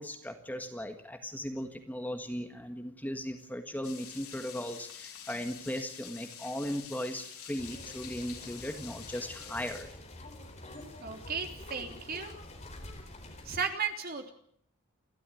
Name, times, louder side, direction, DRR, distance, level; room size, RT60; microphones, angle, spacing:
voice 1, 0.0-9.9, equal, 5° left, 5 dB, 1.6 m, -37 dB
sound 1, 3.8-9.8, left 8 dB, 75° left, 5.5 m, -47 dB
sound 2, 7.6-13.6, left 1 dB, 30° left, 4.3 m, -47 dB
voice 2, 11.0-12.3 13.4-14.3, right 6 dB, 45° right, 4 dB, 3.4 m, -35 dB
29.5 x 12.5 x 9.4 m, 0.66 s
head